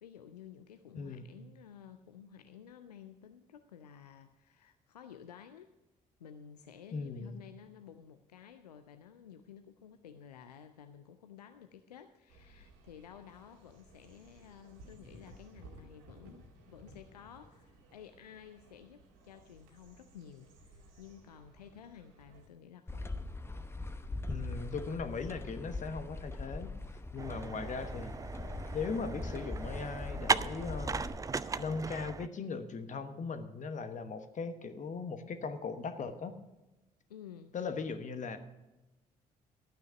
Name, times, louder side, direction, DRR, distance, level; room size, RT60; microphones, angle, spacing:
voice 1, 0.0-5.7 6.2-23.1 37.1-37.5, left 8 dB, 80° left, 9 dB, 0.5 m, -53 dB
voice 2, 0.9-1.3 6.9-7.4 24.3-26.7 27.1-28.3 28.7-31.0 31.6-36.3 37.5-38.4, left 4 dB, 40° left, 9 dB, 1.2 m, -39 dB
sound 1, 12.3-22.5, right 1 dB, 65° right, 1.9 m, -58 dB
sound 2, 22.9-31.2, left 2 dB, 10° left, 0.9 m, -41 dB
sound 3, 27.2-32.3, right 4 dB, 15° right, 0.4 m, -37 dB
12.5 x 9.1 x 5.8 m, 1.0 s
figure-of-eight pair, 45°, 20 cm